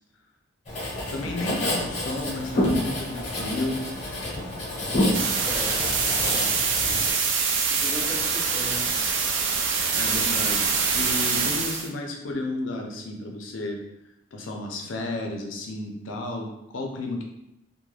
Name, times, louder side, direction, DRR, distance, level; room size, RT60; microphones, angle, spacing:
Writing, 0.7-7.1, left 1 dB, 35° left, 0.7 m, -28 dB
voice 1, 1.1-3.8 10.0-13.8 14.3-17.2, left 2 dB, 85° left, 2 dB, 0.5 m, -32 dB
sound 1, 5.1-11.9, right 5 dB, 75° right, 0.4 m, -24 dB
voice 2, 5.4-7.1 7.7-8.9, equal, 5° right, -6 dB, 0.6 m, -39 dB
2.3 x 2.1 x 3.2 m, 0.86 s
head